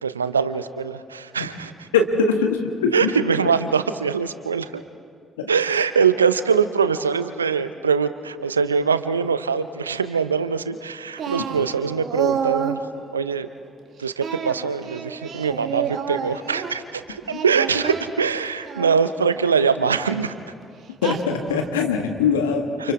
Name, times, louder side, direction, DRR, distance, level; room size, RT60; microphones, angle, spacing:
voice 1, 0.0-1.9 2.9-4.8 5.5-12.8 13.1-13.5 14.0-20.3 22.8-22.9, right 6 dB, 85° right, 12 dB, 0.6 m, -23 dB
voice 2, 1.9-3.1 5.4-5.5 21.0-22.9, left 5 dB, 80° left, 4 dB, 1.6 m, -22 dB
Singing, 11.2-12.8 14.2-16.7 17.2-19.0 19.8-20.1 21.0-21.7, right 7 dB, 55° right, 1.7 m, -29 dB
30.0 x 28.0 x 3.6 m, 2.2 s
figure-of-eight pair, 45°, 0 cm